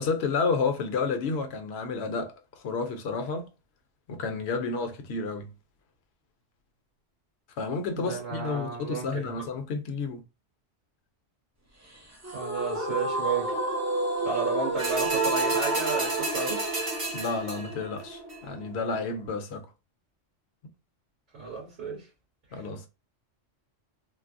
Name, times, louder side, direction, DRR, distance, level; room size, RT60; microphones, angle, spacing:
voice 1, 0.0-2.3 2.6-3.5 4.1-5.5 7.6-10.2 17.1-19.7 22.5-22.9, left 4 dB, 65° left, 0.9 m, -30 dB
voice 2, 7.9-9.3 12.3-13.6 14.2-16.9 21.3-22.1 22.5-22.7, right 5 dB, 70° right, 2.2 m, -33 dB
sound 1, 12.2-19.3, right 2 dB, 20° right, 0.4 m, -30 dB
sound 2, 14.8-17.8 18.3-18.4, right 2 dB, 50° right, 1.2 m, -33 dB
3.9 x 2.0 x 2.5 m
omnidirectional pair, 1.3 m